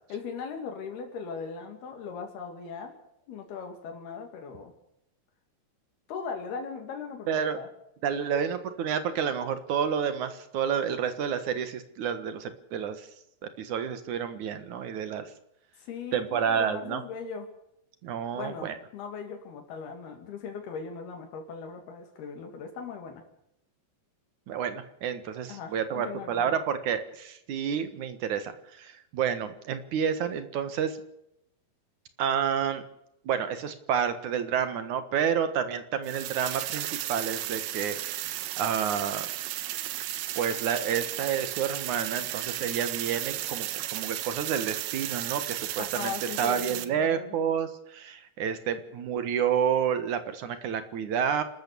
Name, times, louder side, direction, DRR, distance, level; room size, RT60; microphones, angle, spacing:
voice 1, 0.1-3.0 3.3-4.7 6.1-7.7 8.3-8.4 15.8-17.5 18.3-23.2 25.5-26.5 45.8-47.3, left 5 dB, 80° left, 3 dB, 4.6 m, -39 dB
voice 2, 7.3-7.6 8.0-13.1 13.4-15.3 16.1-17.0 18.0-18.8 24.5-31.0 32.2-32.8 33.2-39.3 40.4-51.4, right 8 dB, 60° right, 10 dB, 2.6 m, -29 dB
sound 1, 36.0-46.9, right 14 dB, 90° right, 3.0 m, -34 dB
28.5 x 13.0 x 6.9 m, 0.80 s
omnidirectional pair, 4.4 m